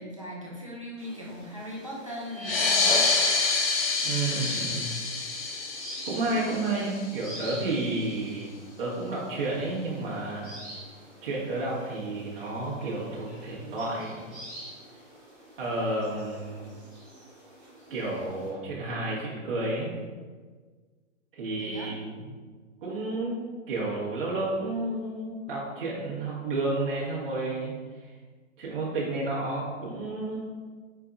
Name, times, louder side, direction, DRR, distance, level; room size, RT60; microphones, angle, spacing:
voice 1, 0.0-2.8 6.5-6.6 21.6-21.9, equal, 30° right, -4 dB, 0.3 m, -39 dB
sound 1, 1.0-18.5, right 1 dB, ahead, 1.0 m, -46 dB
sound 2, 2.3-7.5, left 4 dB, 50° left, 0.6 m, -27 dB
voice 2, 4.0-4.9 6.0-8.5 8.8-10.6 11.2-14.4 15.6-16.7 17.9-19.9 21.3-22.2 22.8-23.3 23.7-27.7 28.0-28.1 28.6-30.4, right 2 dB, 45° right, -7 dB, 1.2 m, -31 dB
4.5 x 4.0 x 2.4 m, 1.5 s
hypercardioid pair, 180°, 39 cm